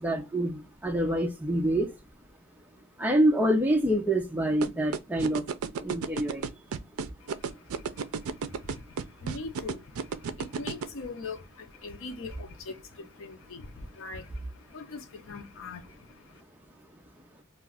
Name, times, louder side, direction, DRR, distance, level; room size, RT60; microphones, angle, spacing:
voice 1, 0.0-1.9 3.0-5.4 5.8-6.4, right 1 dB, 10° right, 0.5 m, -26 dB
sound 1, 4.6-10.8, right 6 dB, 85° right, 0.4 m, -31 dB
voice 2, 7.2-16.4, left 3 dB, 70° left, 0.6 m, -42 dB
2.4 x 2.3 x 3.3 m
head